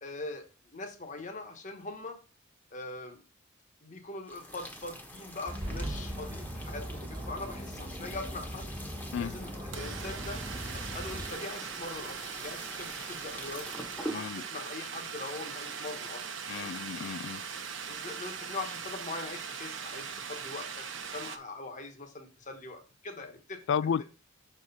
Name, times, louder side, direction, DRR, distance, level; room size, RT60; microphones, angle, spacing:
voice 1, 0.0-2.2 2.7-3.2 3.8-8.7 9.2-10.4 10.7-16.3 16.6-16.7 17.9-20.8 21.1-23.6 24.0-24.1, left 2 dB, 40° left, 1.2 m, -42 dB
sound 1, 4.2-14.2, equal, 10° left, 1.2 m, -45 dB
sound 2, 5.5-11.3, equal, 25° right, 1.5 m, -39 dB
sound 3, 7.7-7.8 7.9-21.4, right 6 dB, 65° right, 0.9 m, -41 dB
voice 2, 14.1-14.4 16.5-17.4 23.7-24.0, left 7 dB, 60° left, 0.3 m, -32 dB
6.4 x 4.4 x 5.4 m
head